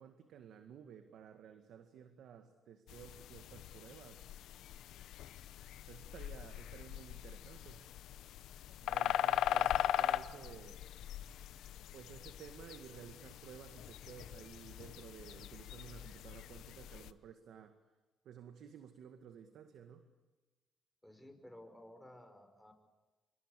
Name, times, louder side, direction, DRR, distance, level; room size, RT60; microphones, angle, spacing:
voice 1, 0.0-4.2 5.9-7.9 8.8-10.8 11.9-17.8 18.3-20.0, right 8 dB, 75° right, 7 dB, 2.0 m, -54 dB
sound 1, 2.9-17.1, left 12 dB, 85° left, 1.0 m, -40 dB
voice 2, 21.0-22.7, left 1 dB, 5° left, 5 dB, 5.7 m, -55 dB
27.5 x 24.5 x 8.4 m, 1.2 s
cardioid pair, 90°, 0 cm